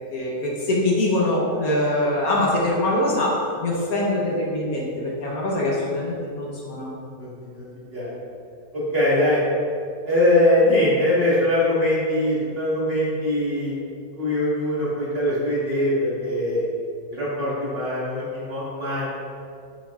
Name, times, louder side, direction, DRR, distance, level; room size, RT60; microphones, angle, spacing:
voice 1, 0.1-6.9, left 1 dB, 60° left, -4 dB, 1.5 m, -23 dB
voice 2, 7.5-8.1 8.7-9.4 10.1-13.8 14.2-16.6 17.1-19.1, left 1 dB, 35° right, -8 dB, 1.8 m, -22 dB
6.8 x 6.8 x 2.5 m, 2.3 s
omnidirectional pair, 1.8 m